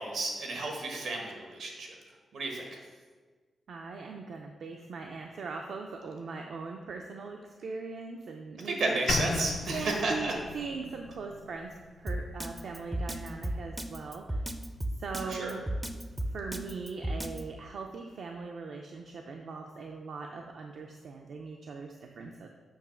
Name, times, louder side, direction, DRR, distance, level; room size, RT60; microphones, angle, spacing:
voice 1, 0.0-1.9 2.3-2.8 8.6-10.3 15.2-15.6, right 2 dB, 85° right, 1 dB, 1.3 m, -32 dB
voice 2, 3.7-9.0 9.7-14.4 15.0-15.6 16.3-22.5, right 4 dB, 65° right, 2 dB, 0.5 m, -40 dB
sound 1, 9.1-13.1, left 4 dB, 65° left, 0.4 m, -37 dB
Drum kit, 12.1-17.4, right 1 dB, 10° right, 0.4 m, -33 dB
7.1 x 3.1 x 6.0 m, 1.4 s
wide cardioid pair, 140°, 0 cm